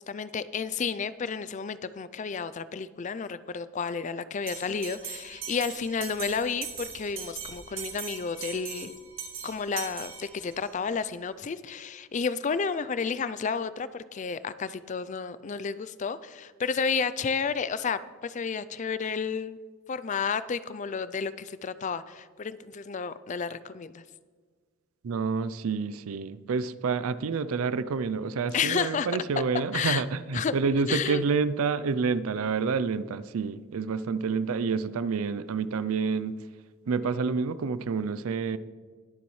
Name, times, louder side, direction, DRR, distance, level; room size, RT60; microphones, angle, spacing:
voice 1, 0.0-8.9 9.4-19.6 19.9-24.0 28.5-29.1 29.5-30.0 30.3-30.5 30.9-31.2, left 5 dB, 35° left, 15 dB, 0.4 m, -31 dB
Bell, 4.5-10.7, right 7 dB, 65° right, 2.1 m, -40 dB
voice 2, 25.0-36.4 36.9-38.6, right 5 dB, 85° right, 15 dB, 0.4 m, -28 dB
21.0 x 7.0 x 3.2 m, 1.6 s
head